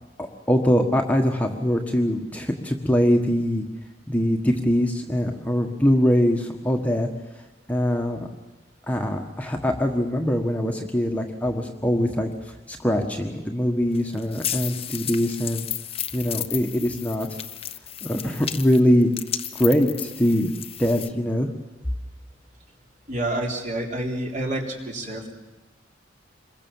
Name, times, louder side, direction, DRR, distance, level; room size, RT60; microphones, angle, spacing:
voice 1, 0.2-3.6 4.1-7.1 7.7-8.3 8.9-15.7 16.1-17.3 18.0-19.1 19.5-20.5 20.8-21.5, equal, 10° left, 2 dB, 1.5 m, -22 dB
sound 1, 13.9-21.1, left 10 dB, 30° left, 0.8 m, -33 dB
voice 2, 23.1-25.3, right 1 dB, 40° right, 1 dB, 3.7 m, -28 dB
26.5 x 22.0 x 7.2 m, 1.1 s
head